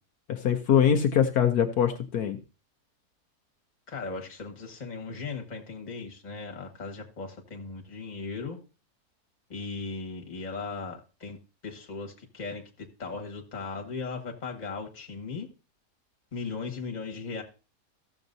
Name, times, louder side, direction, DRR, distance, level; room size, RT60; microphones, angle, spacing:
voice 1, 0.3-2.4, left 8 dB, 75° left, 1.3 m, -23 dB
voice 2, 3.9-8.6 9.5-11.4 11.6-15.5 16.3-17.4, left 4 dB, 30° left, 1.6 m, -37 dB
15.0 x 7.1 x 2.6 m
omnidirectional pair, 1.7 m